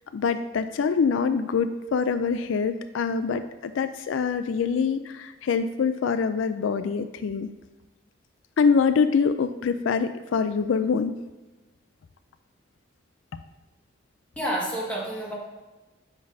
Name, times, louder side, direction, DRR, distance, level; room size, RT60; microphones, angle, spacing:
voice 1, 0.1-7.5 8.6-11.1, left 5 dB, 80° left, 11 dB, 0.4 m, -24 dB
voice 2, 14.3-15.3, equal, 5° left, -5 dB, 1.7 m, -29 dB
8.4 x 6.0 x 2.7 m, 1.2 s
head